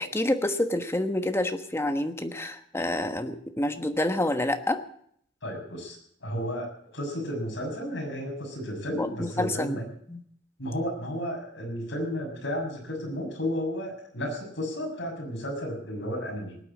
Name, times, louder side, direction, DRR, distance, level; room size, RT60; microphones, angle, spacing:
voice 1, 0.0-4.8 9.0-9.8 10.1-10.2, left 1 dB, 15° left, 7 dB, 1.2 m, -28 dB
voice 2, 5.4-9.8 10.6-16.6, equal, 70° left, 0 dB, 7.0 m, -33 dB
19.5 x 8.7 x 8.5 m, 0.65 s
head